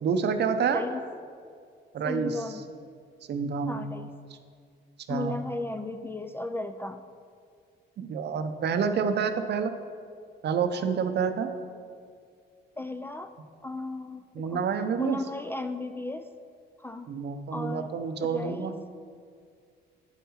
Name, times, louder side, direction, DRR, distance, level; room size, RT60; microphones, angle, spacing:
voice 1, 0.0-0.8 1.9-2.4 3.3-3.9 5.1-5.4 8.0-9.7 10.4-11.5 14.3-15.2 17.1-18.7, right 6 dB, 60° right, 8 dB, 0.6 m, -28 dB
voice 2, 0.7-1.0 2.0-2.7 3.7-4.1 5.1-7.0 12.8-13.3 13.6-14.6 15.0-16.3 16.8-17.2 17.5-17.9 18.2-18.8, left 2 dB, 10° left, 8 dB, 0.3 m, -35 dB
9.1 x 5.6 x 4.3 m, 2.2 s
cardioid pair, 90°, 20 cm